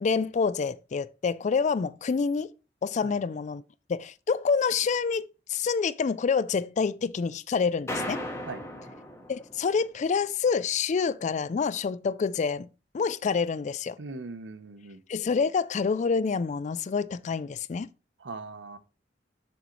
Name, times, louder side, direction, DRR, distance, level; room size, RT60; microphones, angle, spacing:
voice 1, 0.0-2.5 2.8-3.6 3.9-8.2 9.3-12.7 12.9-14.0 15.1-17.9, left 5 dB, 40° left, 0.3 m, -27 dB
sound 1, 7.9-9.9, left 1 dB, 15° left, 1.4 m, -36 dB
voice 2, 14.0-15.0 18.2-18.8, right 3 dB, 70° right, 0.8 m, -40 dB
6.8 x 6.4 x 3.1 m
head